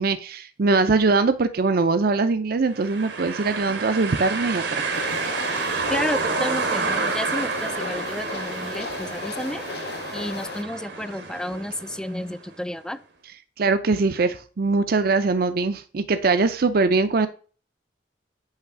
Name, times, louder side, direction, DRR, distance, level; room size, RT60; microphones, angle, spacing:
voice 1, 0.0-4.8 5.1-5.3 13.6-17.3, right 3 dB, 55° right, 11 dB, 0.5 m, -22 dB
sound 1, 2.7-12.5, right 4 dB, 85° right, 1.6 m, -29 dB
two women walking in subway, 4.9-10.6, left 4 dB, 65° left, 0.6 m, -35 dB
voice 2, 5.9-9.6 10.1-13.0, left 1 dB, 5° left, 13 dB, 0.3 m, -31 dB
8.8 x 3.4 x 5.9 m, 0.39 s
head